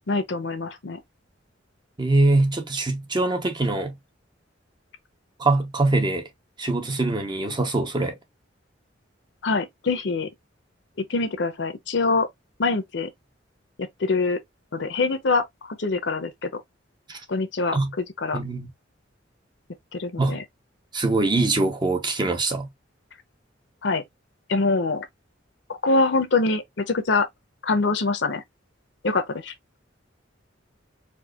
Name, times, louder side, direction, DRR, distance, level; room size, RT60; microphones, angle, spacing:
voice 1, 0.1-1.0 9.4-10.3 11.0-12.3 12.6-13.1 13.8-14.4 14.7-16.6 17.3-17.8 18.2-18.4 19.9-20.4 23.8-24.0 24.5-25.1 25.7-27.3 27.6-28.4 29.0-29.5, left 3 dB, 65° left, 0.7 m, -24 dB
voice 2, 2.0-4.0 5.4-6.3 6.6-8.1 17.1-17.2 17.7-17.9 18.3-18.7 20.2-20.4 20.9-22.7, right 2 dB, 25° right, 0.7 m, -23 dB
4.5 x 2.4 x 2.3 m
head